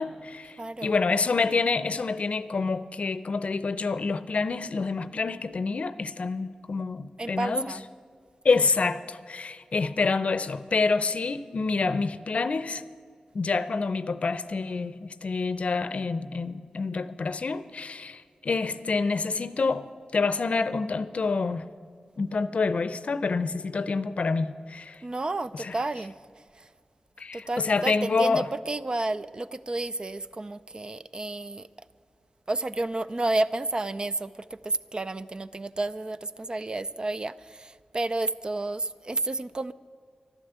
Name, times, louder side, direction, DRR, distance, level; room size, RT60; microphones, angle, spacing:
voice 1, 0.0-7.7 8.4-12.8 13.3-19.9 20.1-21.6 22.2-25.0 25.5-25.7 27.2-28.5, left 4 dB, 60° left, 0.6 m, -27 dB
voice 2, 0.6-1.0 7.2-7.8 25.0-26.2 26.5-26.7 27.3-31.7 32.5-39.7, right 2 dB, 35° right, 0.4 m, -31 dB
12.5 x 11.5 x 8.0 m
wide cardioid pair, 65°, 2 cm